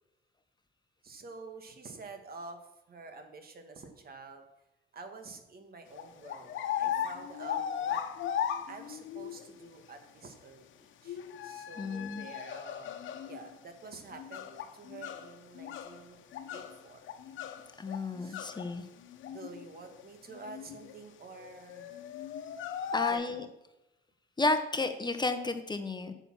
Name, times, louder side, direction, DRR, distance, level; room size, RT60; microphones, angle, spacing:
voice 1, 1.0-2.6 2.9-4.4 4.9-6.5 6.8-8.0 8.7-12.9 13.3-17.0 18.2-18.6 19.3-21.9 23.1-23.5, right 3 dB, 50° right, 6 dB, 1.8 m, -48 dB
sound 1, 5.9-9.4 11.0-13.5 14.1-16.0 16.3-18.7 19.0-19.6 20.0-20.1 20.3-20.9 21.3-23.1, left 9 dB, 75° left, 1.0 m, -37 dB
voice 2, 11.8-12.3 17.8-18.9 22.9-23.5 24.4-26.1, left 3 dB, 20° left, 8 dB, 1.0 m, -32 dB
9.3 x 7.0 x 7.3 m, 0.92 s
cardioid pair, 90°, 20 cm